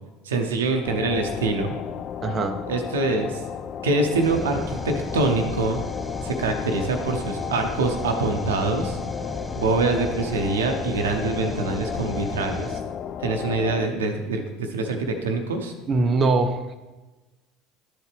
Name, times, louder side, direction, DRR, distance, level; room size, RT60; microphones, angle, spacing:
voice 1, 0.2-1.7 2.7-3.4 3.8-5.8 6.2-9.0 9.6-12.8 13.2-15.7, right 3 dB, 80° right, 5 dB, 0.8 m, -25 dB
sound 1, 0.8-13.9, left 9 dB, 45° left, 0.3 m, -34 dB
voice 2, 2.2-2.6 15.9-16.7, right 3 dB, 35° right, 6 dB, 0.6 m, -22 dB
sound 2, 4.2-12.8, left 1 dB, ahead, 0.7 m, -35 dB
11.5 x 4.4 x 3.4 m, 1.2 s
hypercardioid pair, 70°, 0 cm